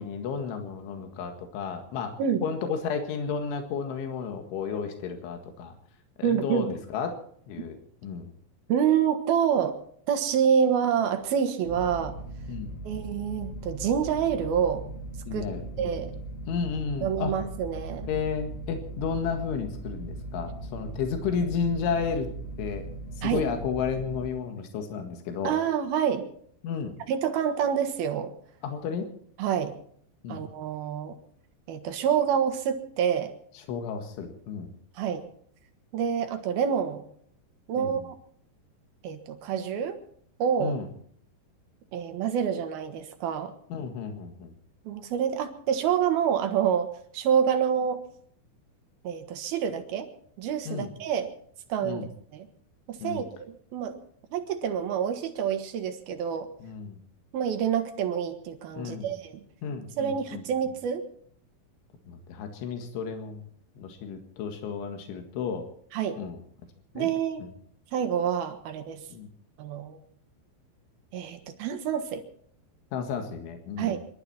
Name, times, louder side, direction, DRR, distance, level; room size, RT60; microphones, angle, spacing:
voice 1, 0.0-2.2 2.4-5.7 6.2-7.2 7.5-7.8 8.0-8.3 12.5-12.7 15.3-15.9 16.5-17.4 18.1-22.3 22.6-22.9 23.2-25.5 26.6-27.0 28.6-29.1 30.2-30.4 33.7-34.7 37.8-38.0 40.6-40.9 43.7-44.5 50.7-50.9 51.8-52.1 53.0-53.3 56.6-57.0 58.7-59.1 59.6-60.4 62.1-63.5 63.8-65.7 66.2-66.4 67.0-67.1 67.4-67.5 69.1-69.3 72.9-74.0, left 6 dB, 85° left, 5 dB, 4.3 m, -32 dB
voice 2, 6.2-6.7 8.7-9.8 10.1-12.1 12.8-14.8 15.3-15.5 15.8-16.1 17.0-18.1 23.2-23.5 25.4-26.3 27.1-28.3 29.4-29.8 30.3-31.1 31.7-33.3 35.0-35.3 35.9-37.0 37.7-38.2 39.0-40.0 40.4-40.8 41.9-43.5 44.9-48.0 49.0-50.1 50.4-51.3 51.7-52.1 52.3-52.5 52.9-54.0 54.3-56.5 57.3-59.4 60.0-61.0 65.9-66.2 67.0-67.4 67.9-69.0 69.6-70.0 71.1-72.2 73.8-74.0, right 8 dB, 65° right, 7 dB, 2.9 m, -27 dB
sound 1, 11.6-24.3, right 1 dB, 45° left, 2.9 m, -39 dB
26.5 x 12.5 x 4.3 m, 0.62 s
omnidirectional pair, 5.4 m